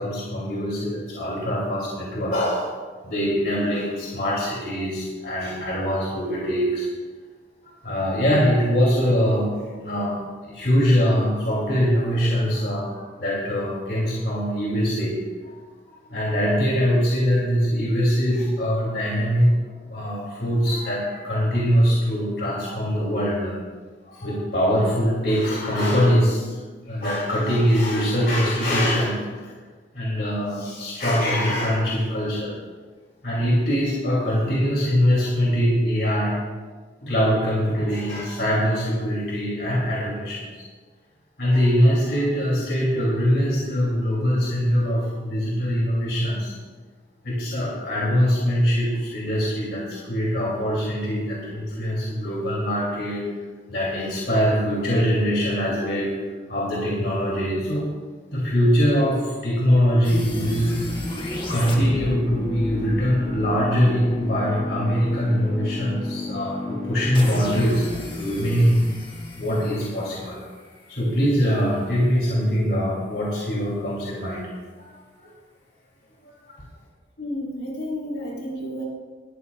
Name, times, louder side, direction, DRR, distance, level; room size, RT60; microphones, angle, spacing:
voice 1, 0.0-2.7 3.0-6.9 7.6-9.5 9.8-15.2 15.4-15.6 15.9-19.5 19.9-23.5 24.0-26.6 26.9-29.5 29.9-32.6 33.2-36.4 37.0-40.6 41.4-46.5 47.2-53.2 53.7-56.1 56.5-57.9 58.3-61.0 61.5-68.8 69.4-70.4 70.9-74.5 74.8-74.9 75.2-75.3 76.2-76.6, equal, 60° left, -5 dB, 2.8 m, -23 dB
sound 1, 60.0-71.0, left 2 dB, 25° left, 1.5 m, -32 dB
voice 2, 77.2-78.8, left 1 dB, 80° left, -2 dB, 3.9 m, -31 dB
20.0 x 13.5 x 2.4 m, 1.5 s
head